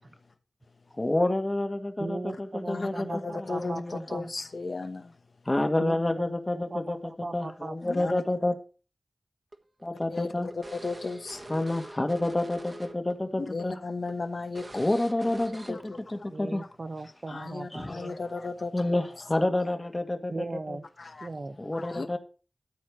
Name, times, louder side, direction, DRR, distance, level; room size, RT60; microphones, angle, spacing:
voice 1, 0.9-3.1 3.4-4.0 5.4-7.0 7.3-8.5 9.8-10.5 11.5-13.7 14.7-16.6 17.7-18.1 18.7-20.3 20.7-20.8 21.6-22.2, left 1 dB, 30° left, 1.5 m, -29 dB
voice 2, 2.0-4.3 5.8-6.0 6.3-7.8 16.3-18.1 20.3-20.8 21.2-21.6, right 3 dB, 55° right, 1.1 m, -38 dB
voice 3, 2.7-5.2 7.8-8.1 10.1-11.6 13.4-14.8 15.7-16.3 17.3-18.7 21.0-21.3 21.7-22.2, left 3 dB, 70° left, 1.0 m, -35 dB
sound 1, 9.5-13.1 13.4-13.6 14.1-14.2 14.6-16.0, right 2 dB, 40° right, 1.4 m, -45 dB
13.0 x 4.3 x 6.3 m
wide cardioid pair, 70°, 0 cm